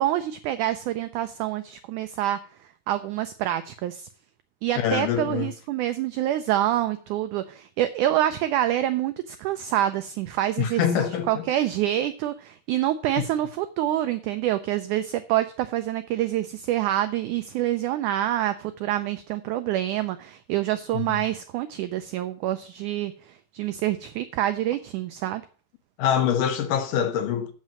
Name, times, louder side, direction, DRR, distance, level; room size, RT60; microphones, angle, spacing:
voice 1, 0.0-2.4 2.9-4.1 4.6-25.4, right 13 dB, 90° right, 1.7 m, -26 dB
voice 2, 4.8-5.5 10.6-11.4 13.2-13.3 20.9-21.0 26.0-27.5, left 9 dB, 70° left, 2.2 m, -24 dB
7.4 x 6.1 x 7.5 m
omnidirectional pair, 4.2 m